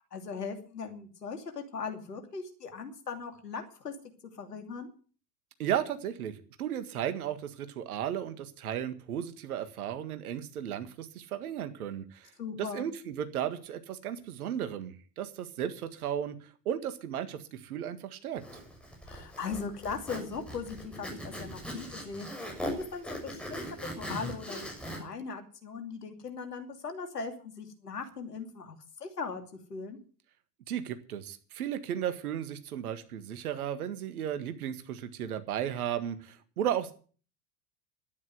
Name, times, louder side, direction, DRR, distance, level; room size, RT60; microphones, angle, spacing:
voice 1, 0.1-3.9 4.3-4.9 12.4-12.9 19.1-22.5 22.8-29.4 29.7-30.0, left 5 dB, 75° left, 5 dB, 2.8 m, -39 dB
voice 2, 5.6-18.4 30.7-36.9, right 10 dB, 65° right, 10 dB, 1.8 m, -35 dB
Zipper (clothing), 18.4-25.0, equal, ahead, 6.5 m, -40 dB
12.0 x 10.0 x 7.9 m, 0.40 s
figure-of-eight pair, 80°, 47 cm